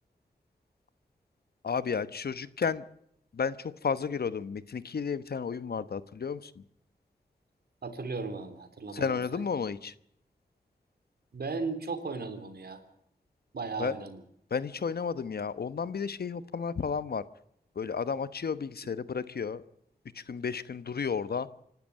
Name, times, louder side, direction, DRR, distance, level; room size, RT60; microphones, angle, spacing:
voice 1, 1.6-2.8 3.3-6.5 8.9-9.9 13.8-13.9 14.5-17.2 17.8-19.6 20.1-21.5, left 6 dB, 70° left, 15 dB, 1.1 m, -32 dB
voice 2, 7.8-9.4 11.3-12.8 13.5-14.2, right 4 dB, 70° right, 8 dB, 3.3 m, -36 dB
26.0 x 12.0 x 8.6 m, 0.72 s
cardioid pair, 45°, 17 cm